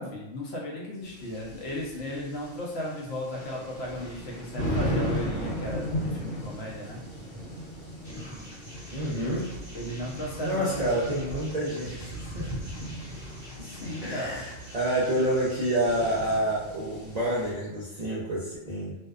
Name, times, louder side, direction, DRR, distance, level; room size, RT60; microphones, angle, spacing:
voice 1, 0.0-7.0 9.1-9.4 9.7-11.2 13.6-14.4, equal, 65° left, -3 dB, 0.8 m, -35 dB
sound 1, 1.0-17.5, equal, 80° left, 1.1 m, -37 dB
sound 2, 8.0-16.4, equal, 5° right, 0.8 m, -46 dB
voice 2, 8.9-9.4 10.4-12.7 13.6-13.7 14.0-18.9, right 1 dB, 60° right, -7 dB, 0.4 m, -28 dB
2.6 x 2.1 x 2.3 m, 1.0 s
omnidirectional pair, 1.3 m